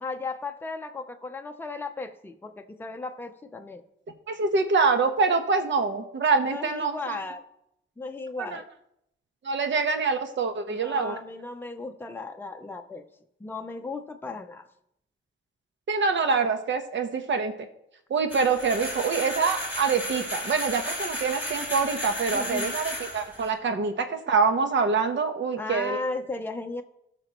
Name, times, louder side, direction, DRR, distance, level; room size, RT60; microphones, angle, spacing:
voice 1, 0.0-3.8 6.4-7.4 8.0-8.6 10.7-13.0 13.4-14.7 22.3-22.7 25.6-26.8, left 3 dB, 10° left, 5 dB, 0.5 m, -35 dB
voice 2, 4.3-7.2 8.5-8.6 9.4-11.2 15.9-17.5 18.1-26.0, right 4 dB, 65° right, 7 dB, 1.0 m, -25 dB
sound 1, 18.3-23.5, left 1 dB, 10° right, 3.0 m, -34 dB
18.0 x 6.0 x 2.9 m, 0.78 s
wide cardioid pair, 165°, 20 cm